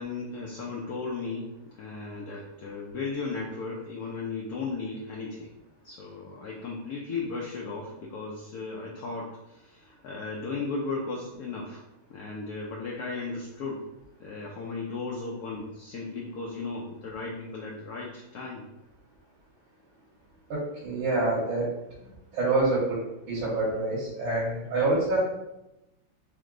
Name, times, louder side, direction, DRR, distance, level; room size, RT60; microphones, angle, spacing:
voice 1, 0.0-5.5 5.8-11.8 12.1-13.9 14.2-18.6, left 4 dB, 65° left, -2 dB, 0.9 m, -36 dB
voice 2, 20.5-21.7 22.3-23.0 23.3-25.2, right 2 dB, 85° right, -8 dB, 2.1 m, -26 dB
4.3 x 3.3 x 3.7 m, 0.91 s
omnidirectional pair, 2.2 m